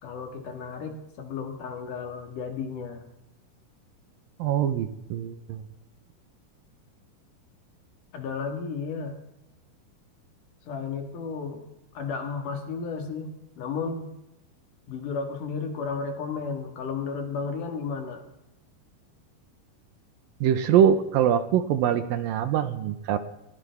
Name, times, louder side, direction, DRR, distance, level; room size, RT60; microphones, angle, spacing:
voice 1, 0.0-3.0 8.1-9.2 10.7-11.6 11.9-13.3 13.6-14.1 14.9-18.2, left 5 dB, 60° left, 5 dB, 3.1 m, -33 dB
voice 2, 4.4-5.6 20.4-23.2, right 9 dB, 75° right, 10 dB, 2.5 m, -23 dB
20.5 x 15.5 x 3.5 m, 0.87 s
omnidirectional pair, 4.4 m